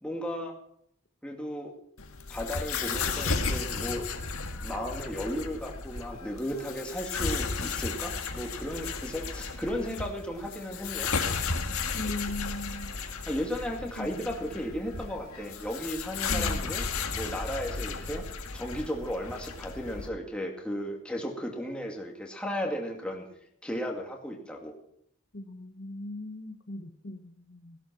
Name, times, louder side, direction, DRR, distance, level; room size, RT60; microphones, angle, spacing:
voice 1, 0.0-0.5 1.2-1.7 2.3-4.1 4.6-11.1 13.3-16.8 17.1-18.3 18.5-23.3 23.6-24.7, equal, 5° left, 0 dB, 2.2 m, -35 dB
sound 1, 2.0-20.1, left 4 dB, 80° left, 1.8 m, -34 dB
voice 2, 11.9-13.0 14.0-14.1 16.3-16.7 25.3-27.8, left 2 dB, 50° left, 6 dB, 1.1 m, -38 dB
17.0 x 11.5 x 5.9 m, 0.70 s
head